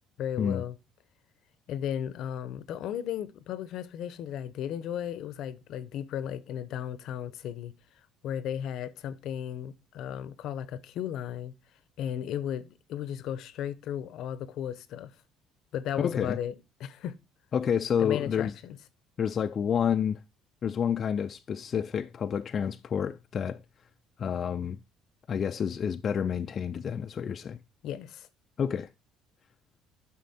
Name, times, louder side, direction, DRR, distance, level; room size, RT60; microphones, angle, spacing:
voice 1, 0.2-0.8 1.7-7.7 8.2-11.5 12.0-15.1 15.7-16.5 16.8-17.1 18.0-18.8 27.8-28.3, left 10 dB, 65° left, 0.7 m, -35 dB
voice 2, 16.0-16.4 17.5-18.5 19.2-20.2 20.6-23.6 24.2-24.8 25.3-27.6 28.6-28.9, left 8 dB, 40° left, 0.4 m, -29 dB
9.5 x 6.0 x 4.2 m
cardioid pair, 125°, 0 cm